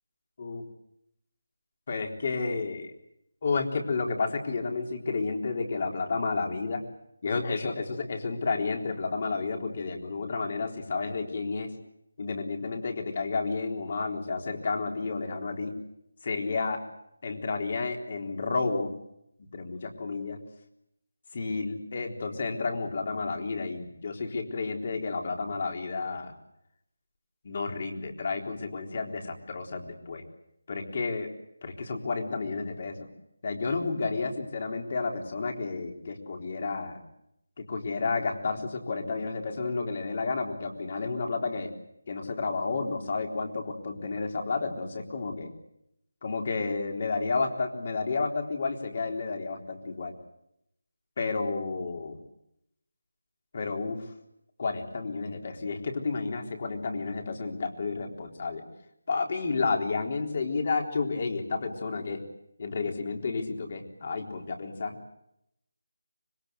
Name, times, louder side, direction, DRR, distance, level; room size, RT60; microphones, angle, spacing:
voice 1, 1.9-2.9 3.4-6.8 7.2-11.7 12.2-15.8 16.2-16.8 17.2-18.9 19.4-20.4 21.3-26.3 27.4-30.2 30.7-31.3 31.6-33.1 33.4-37.0 37.6-41.7 42.1-45.5 46.2-50.1 51.2-52.2 53.5-54.1 54.6-58.6 59.1-62.2 62.6-64.9, left 4 dB, 40° left, 3 dB, 3.9 m, -31 dB
25.0 x 22.0 x 8.1 m, 0.80 s
figure-of-eight pair, 170°, 0 cm